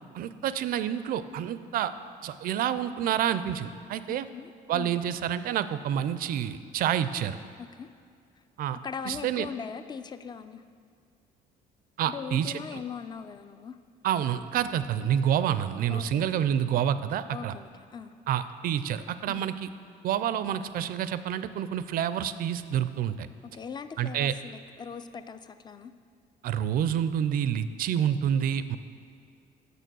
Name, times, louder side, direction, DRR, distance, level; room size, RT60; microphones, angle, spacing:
voice 1, 0.1-1.9 2.2-4.3 4.7-7.4 8.6-8.8 9.1-9.5 12.0-12.8 14.0-17.6 18.3-19.7 20.0-23.3 24.0-24.3 26.4-28.8, right 9 dB, 60° right, 13 dB, 0.4 m, -28 dB
voice 2, 4.1-4.9 7.6-7.9 8.8-10.6 12.0-13.8 15.9-16.3 17.3-18.1 19.2-19.4 23.4-25.9, left 6 dB, 25° left, 11 dB, 0.3 m, -40 dB
6.9 x 6.6 x 6.1 m, 2.3 s
cardioid pair, 110°, 17 cm